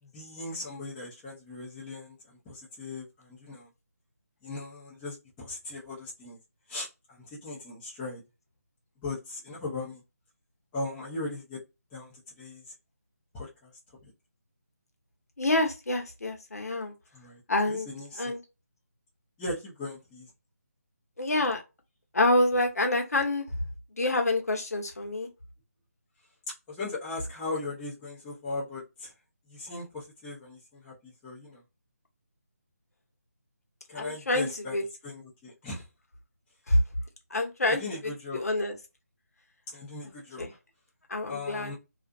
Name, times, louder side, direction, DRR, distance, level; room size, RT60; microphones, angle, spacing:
voice 1, 0.0-3.7 4.4-6.4 6.7-8.2 9.0-10.0 10.7-11.6 11.9-12.7 13.3-13.7 17.1-17.4 17.7-18.3 19.4-20.3 26.7-29.1 29.5-31.6 33.9-34.8 35.0-35.9 37.6-38.4 39.7-40.4 41.3-41.7, left 2 dB, 10° left, 0.6 m, -38 dB
voice 2, 15.4-16.9 17.5-17.9 18.2-18.4 21.2-21.6 22.1-23.5 24.0-25.3 33.9-34.8 36.7-36.8 37.3-37.8 38.3-38.7 40.4-40.5 41.1-41.7, left 2 dB, 65° left, 0.9 m, -27 dB
2.6 x 2.4 x 2.3 m
figure-of-eight pair, 165°, 9 cm